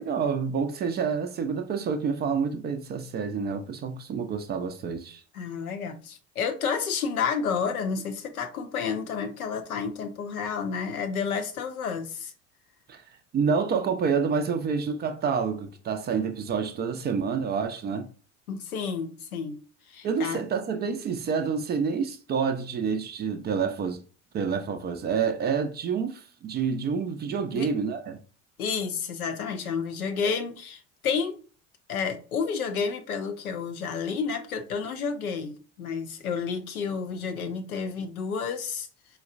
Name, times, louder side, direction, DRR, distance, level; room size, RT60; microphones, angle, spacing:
voice 1, 0.0-5.2 12.9-13.0 13.3-18.0 20.0-24.0 24.3-28.2, right 6 dB, 25° right, 0.4 m, -28 dB
voice 2, 5.3-12.3 18.5-19.6 19.9-20.4 27.5-27.7 28.6-31.4 31.9-38.9, left 6 dB, 85° left, 0.6 m, -30 dB
4.2 x 2.0 x 2.4 m
figure-of-eight pair, 65°, 43 cm